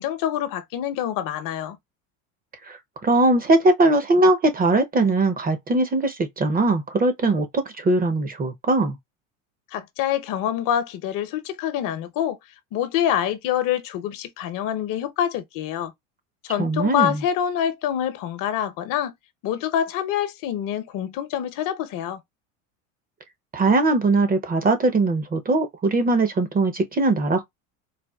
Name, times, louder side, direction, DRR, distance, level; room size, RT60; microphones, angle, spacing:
voice 1, 0.0-1.8 9.7-12.4 12.7-15.9 16.4-19.1 19.4-22.2, left 10 dB, 55° left, 0.8 m, -26 dB
voice 2, 3.0-9.0 16.6-17.2 23.5-27.4, right 2 dB, 20° right, 0.7 m, -20 dB
4.1 x 2.2 x 2.3 m
supercardioid pair, 105°, 40 cm